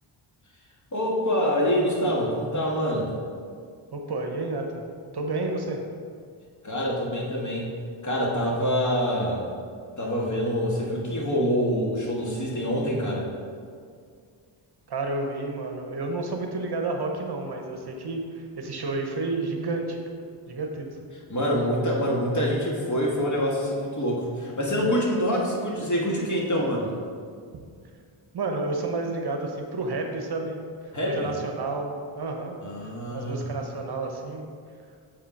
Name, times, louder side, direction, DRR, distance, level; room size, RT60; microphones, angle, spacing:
voice 1, 0.9-3.1 6.6-7.7 8.0-9.4 10.0-13.3 21.3-26.9 30.9-31.3 32.6-33.5, equal, 35° left, -2 dB, 1.6 m, -26 dB
voice 2, 3.9-4.8 5.1-5.8 14.9-20.0 20.5-21.0 27.5-27.6 28.3-32.6 33.1-34.5, right 2 dB, 50° right, 3 dB, 0.9 m, -30 dB
6.7 x 3.7 x 5.7 m, 2.1 s
cardioid pair, 70°, 50 cm